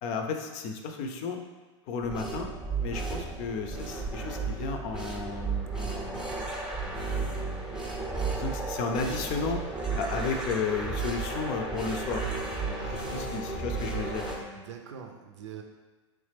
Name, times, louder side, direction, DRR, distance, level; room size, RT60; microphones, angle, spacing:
voice 1, 0.0-1.4 1.9-2.5 2.8-6.3 6.8-7.8 8.3-9.6 10.0-12.3 12.7-14.2, left 5 dB, 45° left, 4 dB, 0.5 m, -34 dB
sound 1, 2.0-14.4, right 4 dB, 5° right, 0.7 m, -34 dB
sound 2, 5.9-14.4, equal, 90° left, 0.8 m, -41 dB
voice 2, 12.8-13.6 14.5-15.6, right 6 dB, 75° right, 4 dB, 0.6 m, -44 dB
3.6 x 3.1 x 3.3 m, 1.3 s
hypercardioid pair, 115°, 16 cm